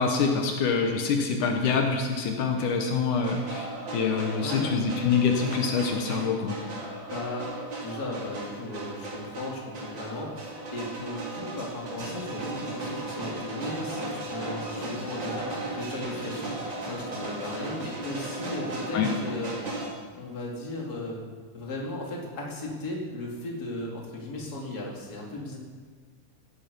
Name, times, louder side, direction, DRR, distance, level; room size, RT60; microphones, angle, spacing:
voice 1, 0.0-3.7 3.9-6.5 18.9-19.1, left 5 dB, 75° left, 3 dB, 2.6 m, -25 dB
sound 1, 3.1-19.9, right 2 dB, 40° right, 3.0 m, -36 dB
voice 2, 4.4-4.9 7.1-7.5 7.8-16.5 16.8-19.6 20.2-21.2 21.5-25.6, left 1 dB, 30° left, -2 dB, 2.8 m, -36 dB
16.5 x 11.5 x 5.3 m, 1.5 s
omnidirectional pair, 3.6 m